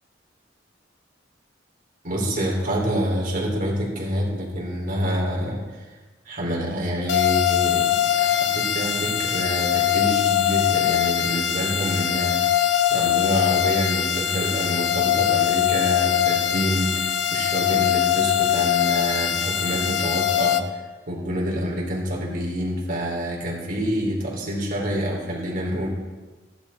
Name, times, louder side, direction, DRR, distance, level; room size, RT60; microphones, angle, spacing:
voice 1, 2.0-5.6 6.3-12.6 12.9-20.8 21.1-25.9, equal, 50° right, -2 dB, 4.0 m, -27 dB
sound 1, 7.1-20.6, left 10 dB, 80° left, 0.8 m, -22 dB
16.0 x 12.0 x 4.4 m, 1.3 s
head